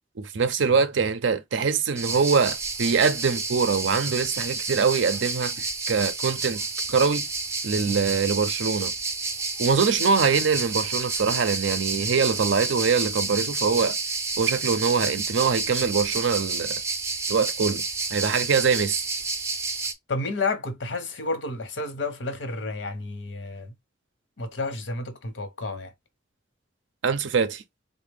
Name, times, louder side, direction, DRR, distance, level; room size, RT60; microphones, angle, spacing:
voice 1, 0.2-6.6 6.9-7.3 7.6-8.9 9.6-14.0 14.4-16.8 17.3-17.8 18.1-19.1 27.0-27.6, right 5 dB, 85° right, 0.5 m, -23 dB
sound 1, 2.0-19.9, right 3 dB, 15° right, 0.4 m, -30 dB
voice 2, 20.1-23.7 24.4-25.9, left 3 dB, 75° left, 0.8 m, -31 dB
3.5 x 2.1 x 3.3 m
head